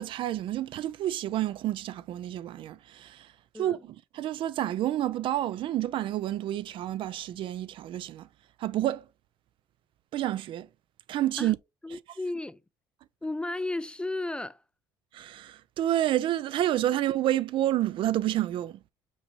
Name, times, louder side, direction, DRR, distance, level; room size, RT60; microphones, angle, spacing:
voice 1, 0.0-3.3 3.6-3.8 4.1-8.3 8.6-9.0 10.1-10.7 11.1-11.6 15.1-18.8, right 13 dB, 60° right, 0.4 m, -29 dB
voice 2, 11.8-12.6 13.2-14.6, left 2 dB, 10° left, 0.3 m, -34 dB
5.5 x 3.1 x 2.6 m
supercardioid pair, 85°, 10 cm